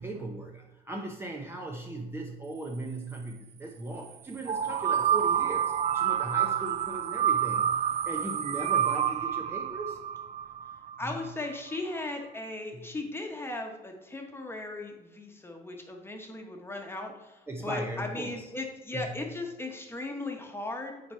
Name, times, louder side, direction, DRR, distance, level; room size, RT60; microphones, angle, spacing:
voice 1, 0.0-10.0 11.0-11.2 12.7-12.9 17.5-18.5 18.9-19.1, right 2 dB, 15° right, 0 dB, 0.7 m, -38 dB
sound 1, 4.4-11.2, right 9 dB, 40° right, 0.4 m, -28 dB
voice 2, 11.0-20.9, left 2 dB, 15° left, 2 dB, 1.2 m, -37 dB
7.2 x 4.5 x 4.5 m, 1.0 s
cardioid pair, 110°, 17 cm